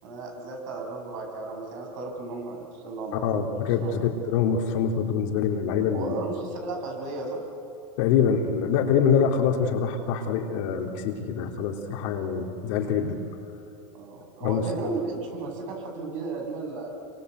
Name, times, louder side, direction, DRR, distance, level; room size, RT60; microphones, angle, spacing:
voice 1, 0.0-3.5 3.8-3.9 5.9-7.4 13.9-16.9, right 3 dB, 60° right, 2 dB, 7.8 m, -34 dB
voice 2, 3.2-6.2 8.0-13.2 14.4-14.6, left 7 dB, 60° left, 2 dB, 3.4 m, -25 dB
28.0 x 24.0 x 8.2 m, 2.7 s
supercardioid pair, 150°, 19 cm